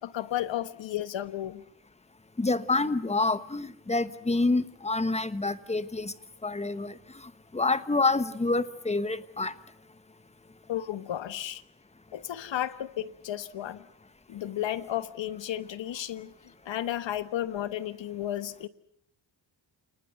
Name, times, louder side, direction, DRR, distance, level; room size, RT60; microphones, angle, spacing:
voice 1, 0.0-1.6 10.7-11.6 12.1-13.9 14.3-18.7, left 12 dB, 70° left, 14 dB, 1.3 m, -33 dB
voice 2, 2.4-6.1 6.4-6.9 7.5-9.5, left 3 dB, 15° left, 13 dB, 1.1 m, -27 dB
28.5 x 19.5 x 8.0 m, 0.75 s
cardioid pair, 110°, 46 cm